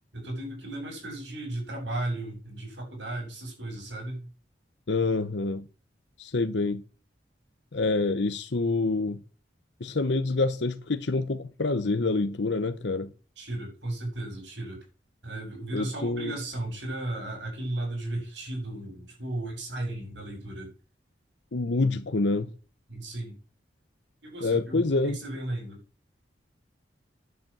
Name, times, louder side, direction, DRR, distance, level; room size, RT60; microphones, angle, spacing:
voice 1, 0.1-4.3 13.4-14.8 15.2-20.7 22.9-23.4 24.2-25.8, right 1 dB, 90° right, 7.9 m, -35 dB
voice 2, 4.9-5.6 6.2-6.8 7.7-9.2 9.8-13.1 15.7-16.3 21.5-22.5 24.4-25.2, left 3 dB, 80° left, 0.9 m, -27 dB
10.5 x 7.3 x 7.5 m
head